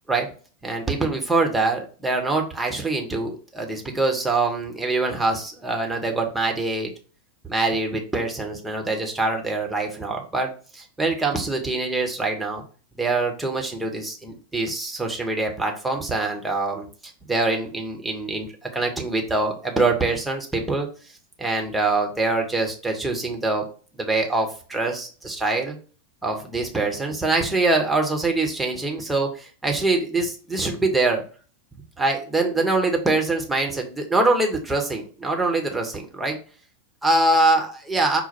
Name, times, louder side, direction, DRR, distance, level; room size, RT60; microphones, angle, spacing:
voice 1, 0.6-6.9 7.4-12.6 13.0-16.9 17.3-20.9 21.4-23.7 23.9-25.8 26.2-31.2 32.0-36.4 37.0-38.2, right 2 dB, 5° right, 1 dB, 1.0 m, -24 dB
5.8 x 2.2 x 4.2 m, 0.39 s
figure-of-eight pair, 90°, 0 cm